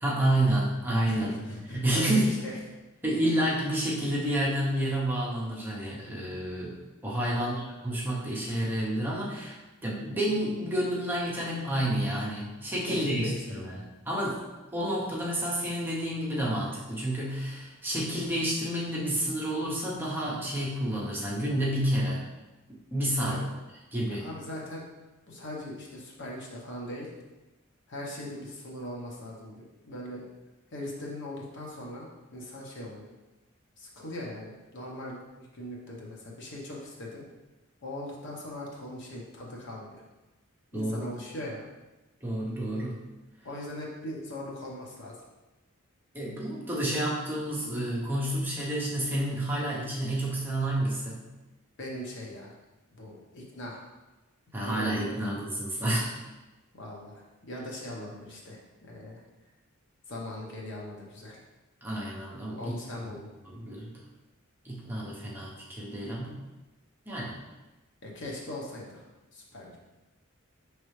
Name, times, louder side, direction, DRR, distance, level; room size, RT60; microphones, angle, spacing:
voice 1, 0.0-2.3 3.0-6.8 7.0-7.5 7.8-9.6 9.8-14.4 14.7-22.2 22.9-23.4 23.9-24.3 40.7-41.1 42.2-43.0 46.1-51.3 54.5-56.1 61.8-62.8 63.4-63.9 64.6-66.3 67.1-67.3, right 1 dB, 10° right, -5 dB, 0.7 m, -29 dB
voice 2, 1.0-2.6 7.3-7.6 12.8-13.7 23.2-23.4 24.1-24.8 25.3-27.1 27.9-30.3 30.7-33.1 33.8-37.2 37.8-40.0 40.7-41.6 43.4-45.2 51.8-52.6 52.9-53.9 54.6-55.3 56.7-59.2 60.1-61.4 62.5-63.3 68.0-69.0 69.3-69.8, left 1 dB, 55° left, -2 dB, 0.9 m, -40 dB
5.3 x 3.2 x 3.1 m, 1.1 s
head